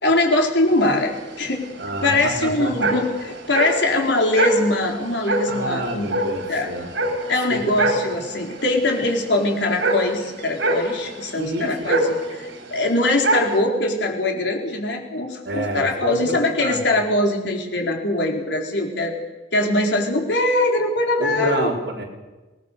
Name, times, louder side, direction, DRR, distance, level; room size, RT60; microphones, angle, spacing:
voice 1, 0.0-1.6 2.0-6.7 7.3-19.1 19.5-21.7, left 2 dB, 75° left, 1 dB, 4.3 m, -22 dB
sound 1, 0.7-13.6, right 1 dB, 90° right, 4.8 m, -26 dB
voice 2, 1.8-2.9 5.4-6.9 7.3-7.9 11.4-11.9 15.4-16.8 21.2-22.0, right 1 dB, 75° right, -2 dB, 4.3 m, -29 dB
25.5 x 19.5 x 6.8 m, 1.2 s
head